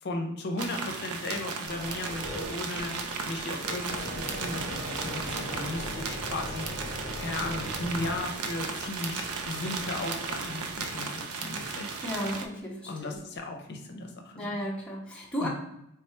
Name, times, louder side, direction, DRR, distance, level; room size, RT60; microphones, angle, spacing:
voice 1, 0.0-11.9 12.8-14.6 15.4-15.5, left 2 dB, 50° left, 3 dB, 0.6 m, -36 dB
sound 1, 0.6-12.5, right 4 dB, 80° right, 0.5 m, -35 dB
sound 2, 1.7-12.6 13.1-13.4, equal, 65° right, 1.2 m, -41 dB
voice 2, 12.0-13.2 14.4-15.5, equal, 5° left, -4 dB, 0.5 m, -34 dB
3.5 x 2.2 x 4.2 m, 0.81 s
head